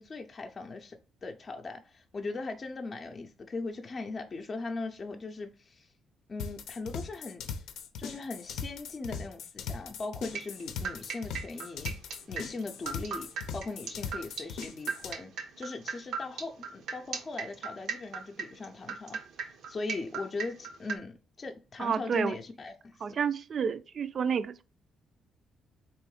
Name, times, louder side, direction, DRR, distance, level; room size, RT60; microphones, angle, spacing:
voice 1, 0.0-5.9 6.3-7.4 8.0-12.0 12.3-23.0, left 3 dB, 35° left, 0.5 m, -39 dB
sound 1, 6.4-15.1, left 6 dB, 85° left, 0.6 m, -39 dB
sound 2, 10.3-21.0, right 5 dB, 75° right, 0.7 m, -37 dB
voice 2, 21.8-22.3 23.0-24.6, right 7 dB, 50° right, 0.4 m, -30 dB
3.5 x 3.0 x 4.8 m
cardioid pair, 90°, 0 cm